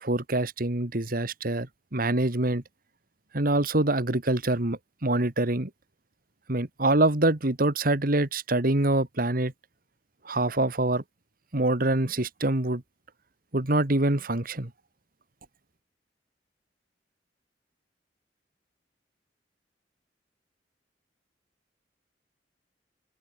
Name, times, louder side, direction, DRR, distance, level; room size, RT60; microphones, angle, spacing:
voice 1, 0.0-1.7 1.9-2.6 3.3-5.7 6.5-9.5 10.3-11.0 11.5-12.8 13.5-14.7, right 2 dB, 55° right, 2.0 m, -25 dB
head